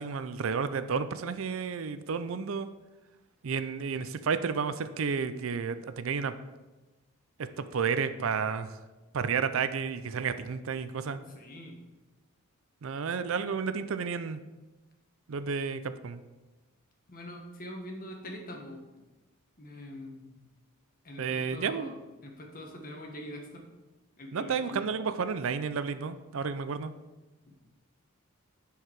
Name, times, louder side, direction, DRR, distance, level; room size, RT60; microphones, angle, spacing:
voice 1, 0.0-2.7 3.4-6.3 7.4-8.8 9.1-11.2 12.8-14.4 15.3-16.2 21.2-21.9 24.3-26.9, right 6 dB, 65° right, 11 dB, 0.5 m, -31 dB
voice 2, 11.1-11.8 17.1-18.8 19.6-20.3 21.0-21.9 22.2-23.7 24.2-24.8, equal, 40° left, 1 dB, 1.4 m, -43 dB
9.8 x 4.7 x 4.7 m, 1.1 s
head